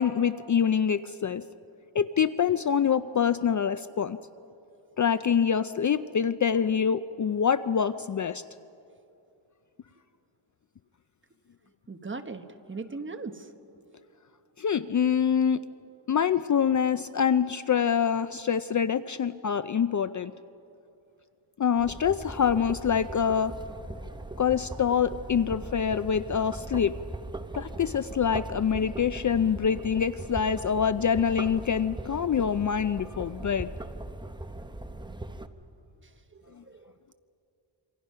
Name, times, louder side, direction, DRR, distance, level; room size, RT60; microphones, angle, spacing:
voice 1, 0.0-1.4 1.9-4.2 5.0-8.4 14.6-15.6 16.1-20.3 21.6-23.5 24.4-26.9 27.5-33.7 36.6-36.7, left 7 dB, 40° left, 13 dB, 0.5 m, -25 dB
voice 2, 11.9-13.5 36.3-36.9, right 3 dB, 25° right, 8 dB, 1.2 m, -39 dB
sound 1, 21.8-35.5, right 1 dB, 10° right, 0.9 m, -39 dB
27.5 x 25.0 x 5.7 m, 2.7 s
wide cardioid pair, 115°, 47 cm